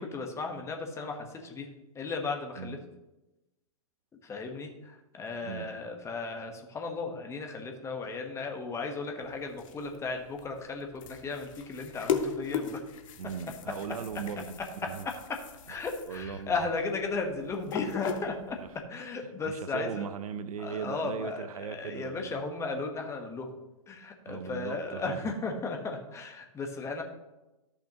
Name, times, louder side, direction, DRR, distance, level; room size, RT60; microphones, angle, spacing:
voice 1, 0.0-1.7 1.9-2.8 4.2-12.8 13.4-13.5 15.7-18.6 18.9-20.0 20.6-23.5 23.9-27.0, left 3 dB, 15° left, 3 dB, 1.2 m, -35 dB
voice 2, 5.4-5.8 13.2-15.1 16.1-16.6 18.6-18.7 19.2-22.4 24.3-25.3, right 7 dB, 70° right, 13 dB, 0.8 m, -39 dB
sound 1, 9.2-18.8, left 7 dB, 60° left, 1.0 m, -38 dB
13.5 x 5.7 x 3.0 m, 1.0 s
hypercardioid pair, 125°, 19 cm